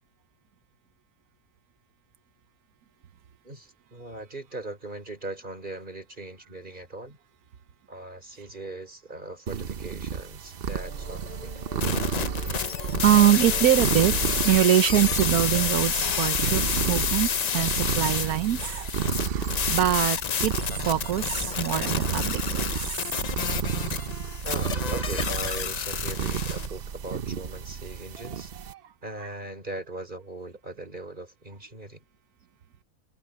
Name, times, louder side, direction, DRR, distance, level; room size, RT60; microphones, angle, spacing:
voice 1, 3.4-7.2 7.9-11.6 20.8-21.0 24.4-28.5 29.0-32.0, right 2 dB, 30° right, 4.6 m, -39 dB
sound 1, 9.5-28.7, right 7 dB, 45° right, 0.9 m, -31 dB
sound 2, 10.7-15.8, left 3 dB, 30° left, 3.1 m, -42 dB
sound 3, 11.8-26.7, left 7 dB, 80° left, 0.3 m, -29 dB
voice 2, 12.4-12.7 13.0-14.1 14.4-18.9 19.3-23.1 28.7-28.8, right 12 dB, 80° right, 1.3 m, -24 dB
open air
omnidirectional pair, 1.6 m